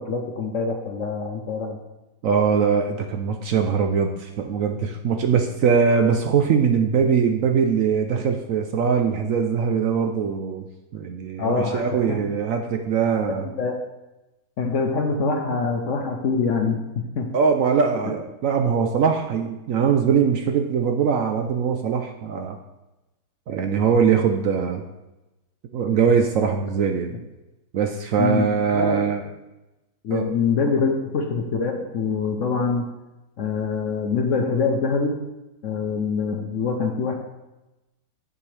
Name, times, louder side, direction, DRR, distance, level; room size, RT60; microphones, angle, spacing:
voice 1, 0.0-1.8 11.4-12.2 13.3-13.8 14.6-16.8 17.2-17.3 18.1-18.2 28.2-29.1 30.0-32.9 33.4-35.2 35.6-37.1, left 4 dB, 60° left, 4 dB, 0.9 m, -24 dB
voice 2, 2.2-10.7 10.9-13.5 17.3-22.6 23.5-24.8 25.7-27.1 27.7-29.2 30.1-30.2, right 6 dB, 65° right, 5 dB, 0.8 m, -21 dB
7.9 x 7.2 x 3.3 m, 1.0 s
omnidirectional pair, 1.8 m